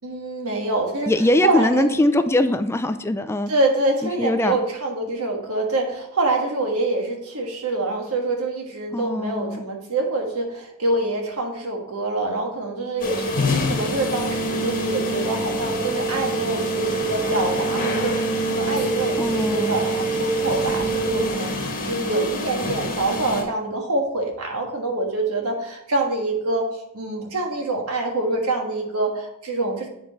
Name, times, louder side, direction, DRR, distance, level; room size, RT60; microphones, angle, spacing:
voice 1, 0.0-1.1 1.4-2.0 3.5-26.7 26.9-29.9, right 2 dB, 70° right, 2 dB, 1.5 m, -25 dB
voice 2, 1.1-3.5 4.0-4.6 8.9-9.6 19.2-19.8, left 1 dB, 10° left, 9 dB, 0.4 m, -21 dB
sound 1, 13.0-23.4, right 1 dB, 35° left, 1.3 m, -25 dB
8.4 x 4.6 x 4.0 m, 0.82 s
head